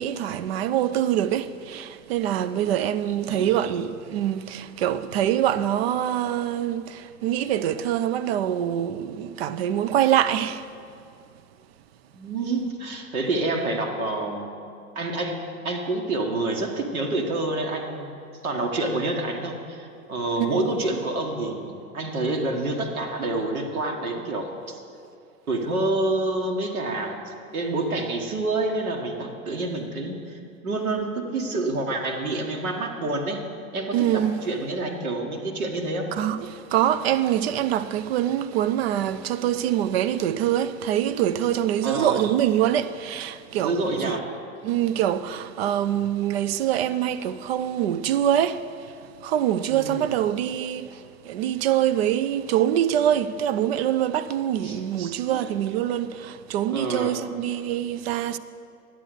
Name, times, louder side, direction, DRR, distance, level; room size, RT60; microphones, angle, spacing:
voice 1, 0.0-10.7 20.3-20.7 33.9-34.4 36.1-44.2 44.6-58.4, right 11 dB, 45° right, 0.5 m, -24 dB
voice 2, 3.1-3.8 12.1-14.5 14.9-18.2 18.4-24.8 25.5-33.4 33.7-36.1 41.8-42.2 43.5-44.2 49.7-50.1 54.6-54.8 55.3-55.5 56.7-57.1, right 2 dB, 70° right, 1.4 m, -28 dB
11.0 x 7.9 x 6.6 m
figure-of-eight pair, 85°, 44 cm